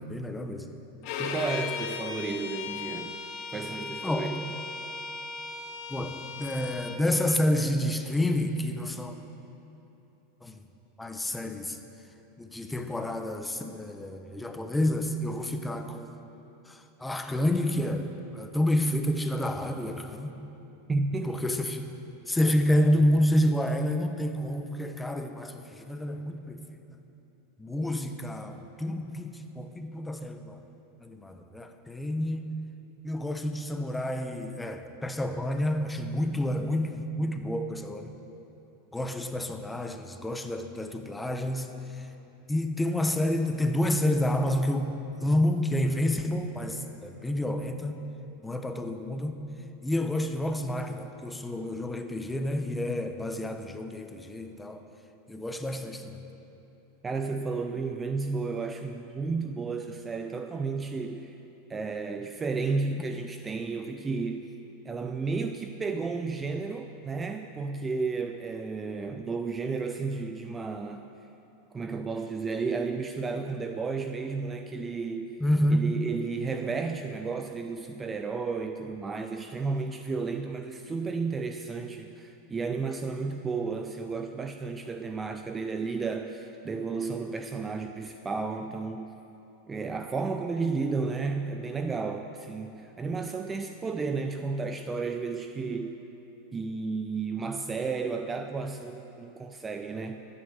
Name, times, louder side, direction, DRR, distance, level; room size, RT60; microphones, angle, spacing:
voice 1, 0.1-0.7 4.0-4.4 5.9-9.2 10.4-10.6 11.0-11.8 12.4-16.1 16.6-20.3 21.2-21.9 22.3-26.6 27.6-30.6 31.0-32.5 33.0-38.1 38.9-42.1 42.5-48.0 48.4-49.4 49.8-54.8 55.3-56.2 75.4-75.9, left 1 dB, 5° left, 6 dB, 1.0 m, -29 dB
Bowed string instrument, 1.0-7.0, left 5 dB, 55° left, 1.6 m, -37 dB
voice 2, 1.2-3.2 3.5-4.5 20.9-21.4 57.0-61.4 61.7-64.5 64.9-71.1 71.7-75.4 75.7-89.1 89.7-96.0 96.5-100.2, right 4 dB, 15° right, 7 dB, 0.5 m, -32 dB
14.5 x 10.0 x 6.5 m, 2.9 s
supercardioid pair, 125°, 0 cm